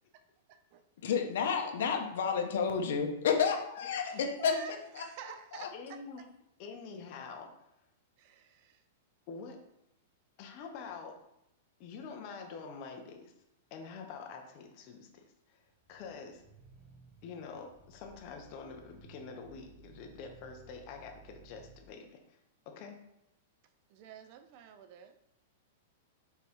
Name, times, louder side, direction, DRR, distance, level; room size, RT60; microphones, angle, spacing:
voice 1, 0.5-0.8 3.9-6.0 8.2-8.8 23.9-25.2, right 8 dB, 40° right, 10 dB, 0.5 m, -49 dB
voice 2, 1.0-4.5 4.9-5.0 5.5-5.7, left 6 dB, 70° left, 4 dB, 1.0 m, -30 dB
voice 3, 4.1-4.7 5.7-6.2 6.6-7.5 9.3-9.6 10.4-11.2 11.8-13.3 13.7-15.6 15.9-16.4 17.2-22.4 22.7-23.0, left 5 dB, 35° left, 3 dB, 1.0 m, -46 dB
sound 1, 15.8-21.9, right 4 dB, 10° right, 0.9 m, -58 dB
5.4 x 4.1 x 4.7 m, 0.83 s
supercardioid pair, 170°, 0 cm